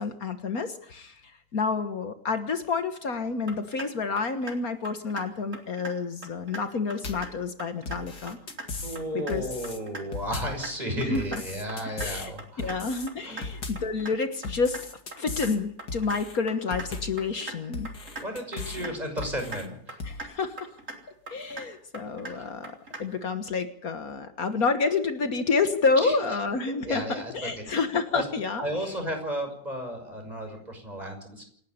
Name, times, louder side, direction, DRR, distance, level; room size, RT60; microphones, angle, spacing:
voice 1, 0.0-8.4 9.1-9.5 11.0-11.2 11.8-12.3 12.6-14.9 15.2-17.9 18.8-18.9 20.1-20.7 21.3-28.6, left 4 dB, 65° left, 9 dB, 1.9 m, -29 dB
sound 1, 3.5-3.9 4.2-4.6 4.9-5.2 5.5-5.9 6.2-6.6 6.9-7.3 7.6-8.0 8.3-8.7 9.0-9.3 9.6-10.0 10.3-10.7 11.0-11.4 11.7-12.1 12.4-12.8 13.1-13.4 13.8-14.1 14.4-14.8 15.1-15.5 15.8-16.2 16.5-16.9 17.2-17.5 17.9-18.3 18.5-18.9 19.2-19.6 19.9-20.3 20.6-21.0 21.3-21.7 21.9-22.3 22.6-23.0, right 2 dB, 50° right, 4.4 m, -39 dB
sound 2, 7.0-7.4 7.9-9.0 9.3-9.8 10.1-10.6 11.2-12.3 12.6-13.1 13.4-13.9 14.4-15.6 15.9-16.4 16.7-17.2 17.7-18.9 19.2-19.7 20.0-20.2, left 3 dB, 85° left, 3.0 m, -37 dB
voice 2, 8.8-12.8 13.2-13.4 18.1-20.0 22.3-22.5 26.0-26.2 26.8-27.9 28.1-28.3 28.6-31.4, equal, 25° right, 4 dB, 6.4 m, -34 dB
28.0 x 11.5 x 9.7 m, 0.64 s
omnidirectional pair, 1.7 m